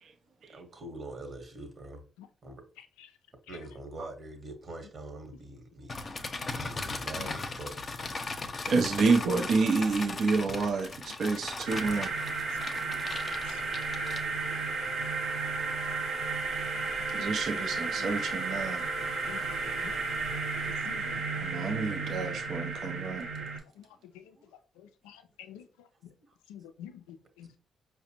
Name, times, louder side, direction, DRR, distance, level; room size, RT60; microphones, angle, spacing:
voice 1, 0.3-2.0 2.4-2.6 3.5-5.9 6.5-7.8 24.3-24.6 26.2-26.4 27.4-27.6, right 2 dB, 50° right, 1.0 m, -45 dB
sound 1, 5.9-14.6, left 3 dB, 45° left, 0.6 m, -38 dB
voice 2, 8.7-12.1 17.1-18.8 21.4-23.3, right 4 dB, 65° right, 0.5 m, -29 dB
sound 2, 11.7-23.6, right 3 dB, 85° right, 0.8 m, -33 dB
sound 3, 14.8-19.9, right 1 dB, 10° left, 0.6 m, -48 dB
voice 3, 20.9-21.2 21.7-21.9 23.4-23.5 25.0-25.2 25.5-25.6 26.5-27.5, left 10 dB, 90° left, 0.3 m, -47 dB
4.8 x 2.0 x 2.8 m
hypercardioid pair, 45°, 0 cm